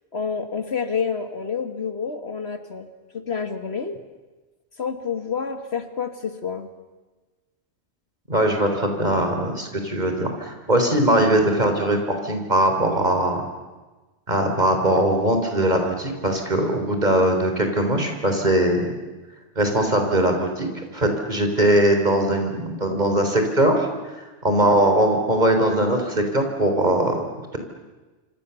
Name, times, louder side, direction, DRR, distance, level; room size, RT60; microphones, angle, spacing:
voice 1, 0.1-2.9 3.1-4.0 4.8-6.7, left 6 dB, 60° left, 8 dB, 2.0 m, -28 dB
voice 2, 8.3-13.4 14.3-18.9 19.6-20.7 20.9-23.9 24.4-27.3, right 1 dB, 35° right, 4 dB, 4.1 m, -20 dB
26.5 x 26.5 x 7.1 m, 1.2 s
omnidirectional pair, 1.2 m